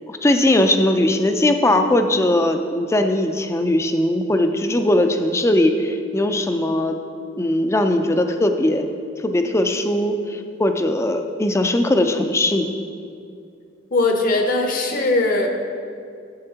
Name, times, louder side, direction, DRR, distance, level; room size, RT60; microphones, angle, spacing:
voice 1, 0.1-7.0 7.4-8.9 9.2-12.7, left 1 dB, 15° left, 6 dB, 0.4 m, -19 dB
voice 2, 13.9-15.5, left 2 dB, 50° left, 3 dB, 0.8 m, -19 dB
10.0 x 7.8 x 2.8 m, 2.4 s
head